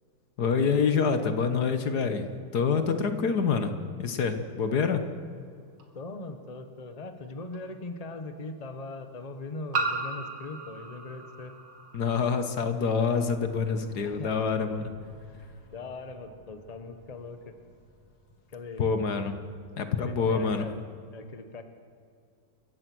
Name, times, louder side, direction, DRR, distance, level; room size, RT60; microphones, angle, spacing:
voice 1, 0.4-5.0 11.9-14.9 18.8-19.4 19.8-20.7, left 5 dB, 65° left, 8 dB, 1.8 m, -26 dB
sound 1, 5.8-5.9 7.5-7.6 9.7-12.2, right 3 dB, 90° right, 2.7 m, -34 dB
voice 2, 5.9-11.5 14.0-14.3 15.3-17.5 18.5-18.8 20.0-20.8 21.1-21.6, left 3 dB, 25° left, 8 dB, 1.2 m, -40 dB
sound 2, 13.3-19.7, equal, 10° right, 5.6 m, -54 dB
28.0 x 15.5 x 6.2 m, 2.2 s
omnidirectional pair, 1.9 m